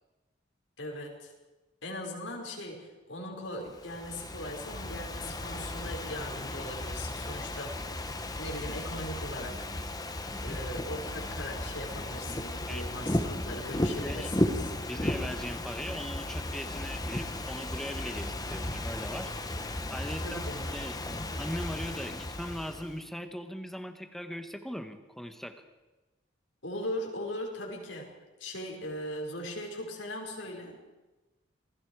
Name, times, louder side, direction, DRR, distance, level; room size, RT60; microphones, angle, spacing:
voice 1, 0.8-1.3 1.8-7.8 8.4-9.7 10.4-14.6 20.2-20.8 26.6-28.1 28.4-30.8, left 1 dB, 80° left, 0 dB, 5.4 m, -39 dB
Ocean / Fireworks, 3.7-23.0, left 1 dB, 20° left, 1.3 m, -35 dB
voice 2, 10.3-10.6 12.7-12.9 13.8-14.3 14.8-19.6 19.9-20.4 20.7-21.0 21.4-25.6, equal, ahead, 7 dB, 1.4 m, -40 dB
28.0 x 20.5 x 4.9 m, 1.1 s
head